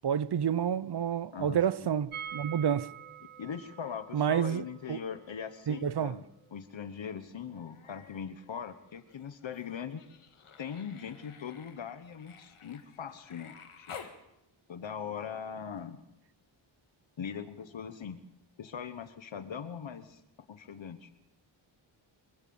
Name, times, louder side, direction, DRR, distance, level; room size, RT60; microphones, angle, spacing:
voice 1, 0.0-2.9 4.1-5.0 5.7-6.1, right 8 dB, 50° right, 0.8 m, -29 dB
voice 2, 1.3-1.9 3.4-6.2 6.5-10.0 10.6-14.0 14.7-16.0 17.2-18.2 18.6-20.2 20.5-21.1, left 7 dB, 65° left, 1.3 m, -41 dB
sound 1, 2.1-7.9 8.1-8.2 8.5-8.6, right 9 dB, 75° right, 1.4 m, -47 dB
Human voice, 7.5-8.3 8.6-14.2 15.8-15.9, left 6 dB, 80° left, 2.2 m, -52 dB
25.0 x 15.5 x 7.2 m
wide cardioid pair, 95°, 49 cm